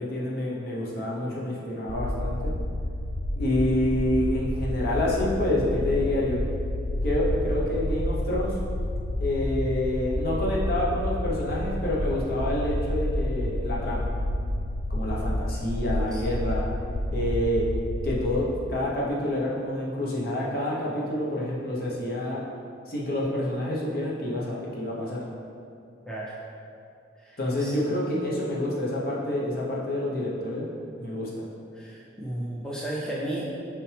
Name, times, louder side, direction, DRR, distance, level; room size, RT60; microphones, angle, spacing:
voice 1, 0.0-2.5 3.4-6.4 7.0-8.5 9.2-14.1 14.9-16.7 17.1-17.6 18.0-22.4 22.9-25.2 27.4-30.7 31.0-31.4, left 1 dB, 50° left, -5 dB, 1.0 m, -28 dB
sound 1, 1.9-18.4, left 1 dB, 75° left, 0.4 m, -29 dB
voice 2, 26.1-26.4 27.2-27.7 31.7-33.4, right 1 dB, 5° left, -6 dB, 0.6 m, -34 dB
5.9 x 4.9 x 3.4 m, 2.5 s
head